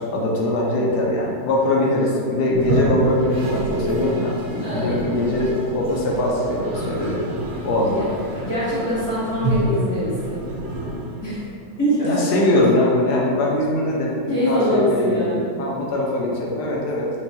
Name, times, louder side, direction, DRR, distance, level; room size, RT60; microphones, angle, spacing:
voice 1, 0.0-7.2 7.6-8.1 12.0-17.1, left 1 dB, 75° left, -3 dB, 1.2 m, -22 dB
Toilet flush, 2.5-11.6, right 1 dB, 80° right, 0.6 m, -28 dB
voice 2, 4.6-5.0 7.9-8.1 8.3-10.4 11.2-11.5 11.8-12.4 14.3-15.5, equal, 50° left, -15 dB, 1.9 m, -23 dB
4.6 x 2.2 x 2.7 m, 2.2 s
omnidirectional pair, 1.9 m